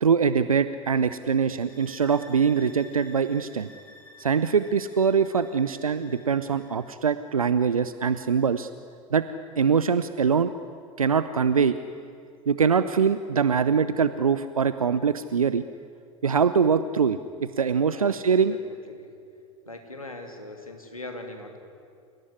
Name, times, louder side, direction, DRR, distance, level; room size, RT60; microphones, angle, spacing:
voice 1, 0.0-3.7 4.2-8.7 9.1-9.2 9.6-10.5 11.0-11.7 12.5-15.6 16.2-18.6, right 6 dB, 85° right, 13 dB, 0.6 m, -23 dB
sound 1, 1.4-6.8, left 1 dB, 10° left, 7.5 m, -51 dB
voice 2, 18.5-19.1 19.7-21.6, left 2 dB, 85° left, 4 dB, 2.8 m, -40 dB
27.5 x 17.5 x 9.9 m, 2.3 s
figure-of-eight pair, 75°, 18 cm